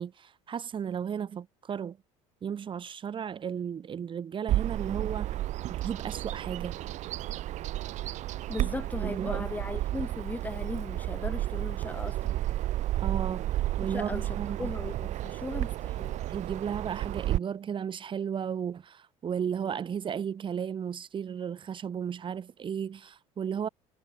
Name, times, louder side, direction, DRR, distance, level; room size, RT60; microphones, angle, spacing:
voice 1, 0.0-2.0 2.4-5.4 5.7-6.8 9.0-9.5 13.0-14.7 16.3-23.7, right 8 dB, 35° right, 4.7 m, -34 dB
Bird vocalization bird call bird song, 4.5-17.4, right 14 dB, 60° right, 2.1 m, -32 dB
voice 2, 8.5-12.4 13.9-16.2, left 2 dB, 10° left, 6.0 m, -38 dB
cardioid pair, 110°, 14 cm